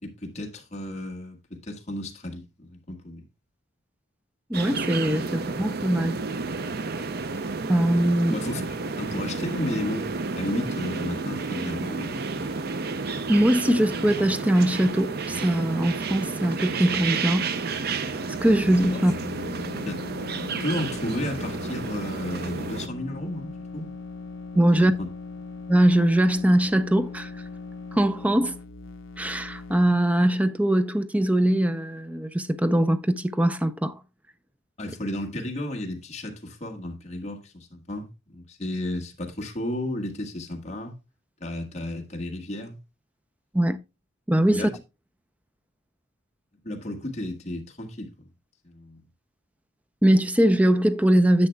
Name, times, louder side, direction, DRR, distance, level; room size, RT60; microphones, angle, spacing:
voice 1, 0.0-3.2 8.3-12.5 19.8-20.0 20.6-23.9 24.7-25.1 34.8-41.0 41.4-42.8 44.5-44.7 46.6-48.1 48.6-49.0, left 1 dB, 35° left, 1.5 m, -33 dB
voice 2, 4.5-6.1 7.7-8.4 13.3-17.5 18.4-19.1 24.5-24.9 25.7-27.3 27.9-28.5 29.2-34.0 43.5-43.8 44.3-44.7 50.0-51.5, right 1 dB, 5° right, 0.5 m, -21 dB
sound 1, 4.5-22.9, right 4 dB, 50° right, 0.6 m, -31 dB
sound 2, 18.2-29.9, left 4 dB, 75° left, 0.7 m, -39 dB
10.5 x 7.5 x 2.2 m
head